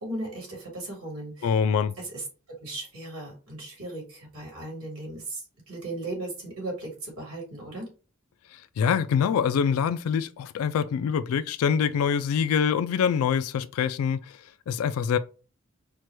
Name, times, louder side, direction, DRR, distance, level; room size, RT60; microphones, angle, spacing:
voice 1, 0.0-1.5 2.0-2.2 2.6-7.9, right 2 dB, 90° right, 2.5 m, -37 dB
voice 2, 1.4-1.9 8.5-14.4 14.7-15.2, left 7 dB, 80° left, 0.3 m, -25 dB
4.6 x 2.2 x 4.5 m
head